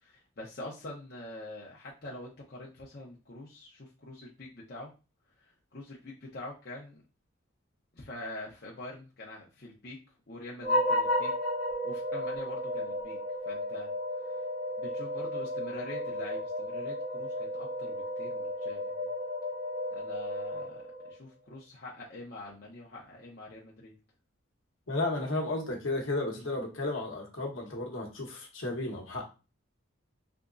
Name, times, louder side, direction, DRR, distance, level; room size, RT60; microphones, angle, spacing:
voice 1, 0.0-4.9 5.7-7.0 7.9-10.0 10.3-11.3 11.8-13.2 13.5-13.9 14.8-19.1 19.9-23.9, left 1 dB, 50° left, -4 dB, 0.8 m, -45 dB
sound 1, 10.6-21.2, left 1 dB, 45° right, 1.5 m, -33 dB
voice 2, 24.9-29.3, left 2 dB, 70° left, 0 dB, 1.0 m, -33 dB
3.5 x 2.9 x 2.5 m, 0.30 s
head